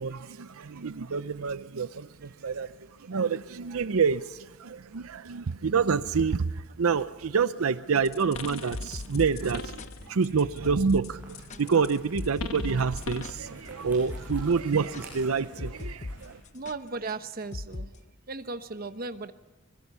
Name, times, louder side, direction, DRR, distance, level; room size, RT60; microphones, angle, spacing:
voice 1, 0.0-16.4, right 5 dB, 85° right, 14 dB, 0.6 m, -28 dB
sound 1, 8.0-10.6 10.9-13.4, left 4 dB, 80° left, 1.3 m, -41 dB
sound 2, 8.5-16.2 16.4-16.8 17.5-17.9, left 2 dB, 35° left, 0.7 m, -39 dB
sound 3, 11.1-16.4, right 1 dB, 10° right, 7.4 m, -49 dB
voice 2, 16.5-17.9 18.3-19.3, right 3 dB, 45° right, 9 dB, 1.1 m, -36 dB
25.5 x 21.5 x 5.6 m, 1.2 s
head